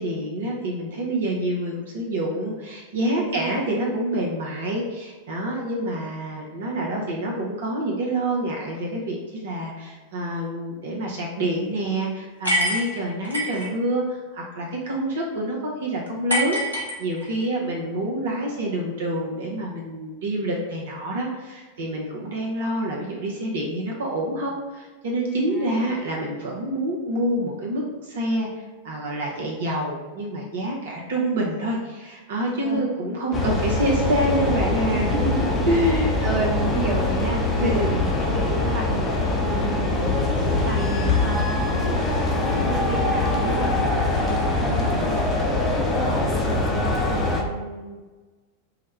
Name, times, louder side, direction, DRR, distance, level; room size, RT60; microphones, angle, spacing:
voice 1, 0.0-28.5 28.8-35.1 35.7-36.3 37.6-38.0 40.4-41.2, right 1 dB, 60° right, -2 dB, 0.7 m, -27 dB
voice 2, 3.1-3.5 25.5-25.9 32.6-32.8 34.9-35.7 36.2-40.1 40.6-43.8 44.1-45.5 45.9-46.2 46.5-48.0, right 3 dB, 30° right, -1 dB, 0.8 m, -31 dB
sound 1, 12.4-13.7 16.3-17.5, equal, 90° left, 0.9 m, -25 dB
sound 2, 33.3-47.4, left 2 dB, 20° left, 0.6 m, -23 dB
4.6 x 2.1 x 3.2 m, 1.3 s
figure-of-eight pair, 90°, 0 cm